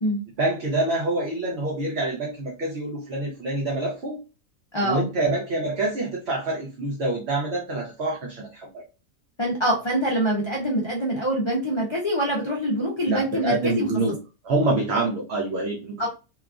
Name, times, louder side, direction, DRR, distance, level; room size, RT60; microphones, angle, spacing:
voice 1, 0.4-4.2 4.8-8.8 13.1-14.1 14.4-15.9, right 2 dB, 55° right, -3 dB, 0.9 m, -26 dB
voice 2, 4.7-5.1 9.4-13.9 16.0-16.1, equal, 45° left, -2 dB, 0.3 m, -24 dB
3.0 x 2.4 x 2.3 m, 0.31 s
omnidirectional pair, 1.4 m